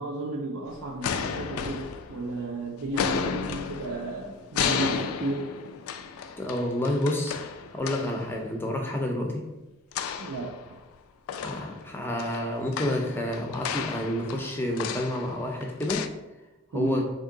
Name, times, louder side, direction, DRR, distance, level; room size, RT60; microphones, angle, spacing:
voice 1, 0.0-5.5 10.2-10.6 16.7-17.0, right 2 dB, 85° right, 0 dB, 0.4 m, -33 dB
sound 1, 0.7-2.5 2.8-8.3 9.9-11.0 11.3-16.1, left 7 dB, 80° left, 0.3 m, -33 dB
voice 2, 6.4-9.4 11.4-16.1 16.7-17.0, left 1 dB, 10° left, 1 dB, 0.4 m, -29 dB
3.6 x 2.7 x 3.7 m, 1.0 s
head